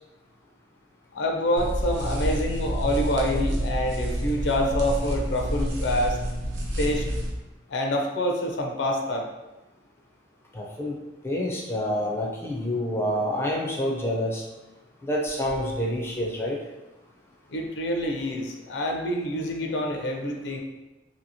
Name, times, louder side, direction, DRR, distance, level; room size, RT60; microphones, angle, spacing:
voice 1, 1.1-6.2 6.8-7.1 7.7-9.2 17.5-20.6, left 1 dB, 80° left, 2 dB, 0.5 m, -26 dB
sound 1, 1.6-7.3, equal, 80° right, 0.6 m, -28 dB
voice 2, 10.5-11.0 11.2-14.4 15.0-16.6, left 1 dB, 15° left, -2 dB, 0.4 m, -27 dB
2.8 x 2.8 x 2.7 m, 1.0 s
head